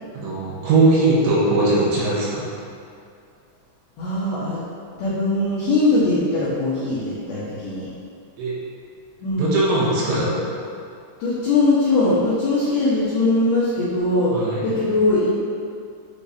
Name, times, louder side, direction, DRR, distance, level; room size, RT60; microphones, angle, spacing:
voice 1, 0.1-2.4 8.4-8.5 9.4-10.3 14.3-14.6, right 2 dB, 75° right, -7 dB, 3.4 m, -19 dB
voice 2, 4.0-4.6 5.0-7.9 9.2-9.5 11.2-15.4, left 2 dB, 80° left, -10 dB, 2.2 m, -21 dB
9.1 x 4.7 x 2.8 m, 2.4 s
omnidirectional pair, 6.0 m